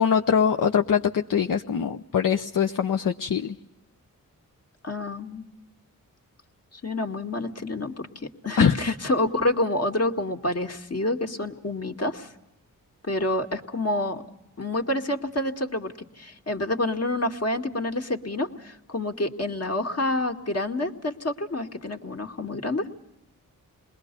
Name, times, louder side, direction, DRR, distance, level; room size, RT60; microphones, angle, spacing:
voice 1, 0.0-3.6 8.6-8.7, left 7 dB, 65° left, 6 dB, 0.8 m, -22 dB
voice 2, 4.8-5.5 6.7-8.1 8.4-12.3 13.1-14.2 14.6-22.9, left 1 dB, 45° left, 4 dB, 2.1 m, -28 dB
28.5 x 21.0 x 5.3 m, 0.92 s
cardioid pair, 60°, 34 cm